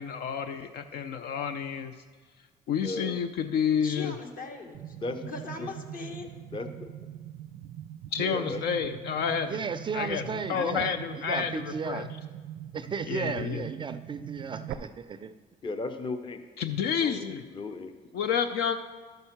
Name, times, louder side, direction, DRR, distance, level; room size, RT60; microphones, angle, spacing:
voice 1, 0.0-1.9 2.7-4.1 8.1-9.6 9.9-12.1 13.1-13.6 16.6-17.4 18.1-18.8, left 7 dB, 70° left, 9 dB, 0.5 m, -30 dB
voice 2, 2.8-3.2 5.0-5.3 5.6-5.7 6.5-6.9 8.2-8.9 15.6-16.4 17.0-18.0, left 3 dB, 30° left, 7 dB, 0.6 m, -36 dB
voice 3, 3.8-5.0 5.3-6.3, left 3 dB, 55° left, 3 dB, 1.4 m, -40 dB
sound 1, 4.7-14.7, right 11 dB, 80° right, 0.5 m, -42 dB
voice 4, 9.5-12.1 12.7-15.3, right 5 dB, 30° right, 11 dB, 0.4 m, -35 dB
12.0 x 5.4 x 5.8 m, 1.5 s
cardioid pair, 110°, 17 cm